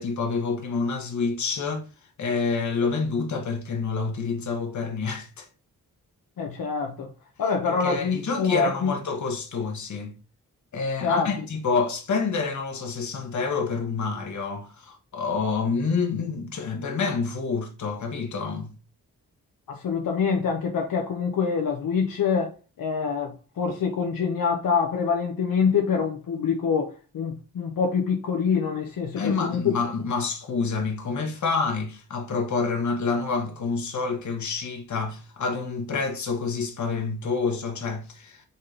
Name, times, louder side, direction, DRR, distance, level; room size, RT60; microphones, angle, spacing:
voice 1, 0.0-1.8 2.2-5.5 7.7-10.1 10.7-18.7 29.2-38.4, left 4 dB, 55° left, 1.2 m, -28 dB
voice 2, 6.4-7.1 7.4-8.9 11.0-11.4 19.7-29.7, left 5 dB, 80° left, 0.9 m, -25 dB
4.2 x 3.8 x 3.2 m
wide cardioid pair, 125°, 34 cm